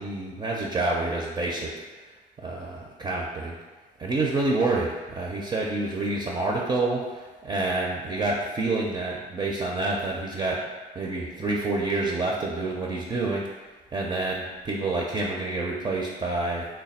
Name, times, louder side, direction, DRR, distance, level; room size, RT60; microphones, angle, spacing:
voice 1, 0.0-1.7 2.4-3.5 4.0-10.6 11.0-13.4 13.9-16.7, right 2 dB, 25° right, -2 dB, 0.4 m, -28 dB
3.2 x 2.2 x 4.1 m, 1.4 s
cardioid pair, 110°, 17 cm